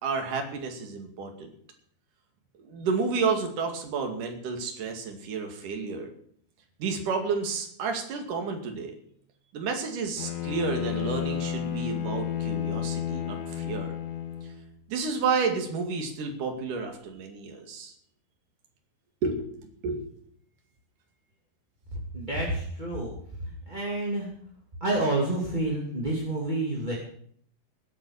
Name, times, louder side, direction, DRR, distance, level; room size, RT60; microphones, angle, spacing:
voice 1, 0.0-1.5 2.6-6.1 6.8-8.9 9.5-13.9 14.9-17.9 19.2-20.1, right 4 dB, 55° right, 4 dB, 3.7 m, -31 dB
Bowed string instrument, 10.2-14.6, left 10 dB, 85° left, 3.8 m, -31 dB
voice 2, 22.1-23.1 23.4-24.3 24.8-26.9, right 2 dB, 15° right, -3 dB, 1.8 m, -29 dB
19.0 x 8.6 x 6.5 m, 0.63 s
omnidirectional pair, 5.0 m